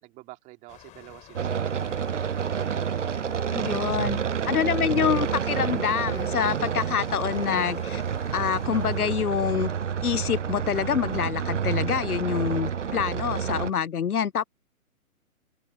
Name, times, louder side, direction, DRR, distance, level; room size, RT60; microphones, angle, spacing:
voice 1, 0.0-2.1 2.6-3.0 3.6-4.9 12.1-12.5 13.1-13.4, right 21 dB, 15° right, 2.9 m, -46 dB
sound 1, 0.7-9.0, left 16 dB, 15° left, 4.6 m, -50 dB
sound 2, 1.3-13.7, right 7 dB, 55° right, 0.8 m, -29 dB
voice 2, 3.5-4.2 4.5-8.0 8.3-9.7 10.0-14.4, left 8 dB, 80° left, 0.6 m, -26 dB
figure-of-eight pair, 135°, 44 cm